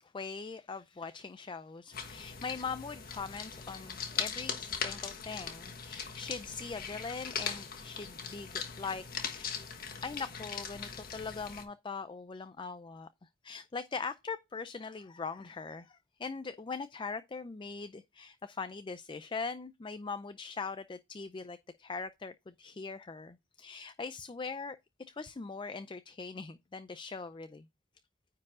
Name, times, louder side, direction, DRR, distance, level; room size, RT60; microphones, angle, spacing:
voice 1, 0.0-9.0 9.3-9.7 10.0-24.8 25.1-27.7, left 4 dB, 25° left, 0.4 m, -41 dB
sound 1, 1.9-11.6, left 6 dB, 50° left, 1.5 m, -40 dB
9.6 x 4.7 x 3.6 m
head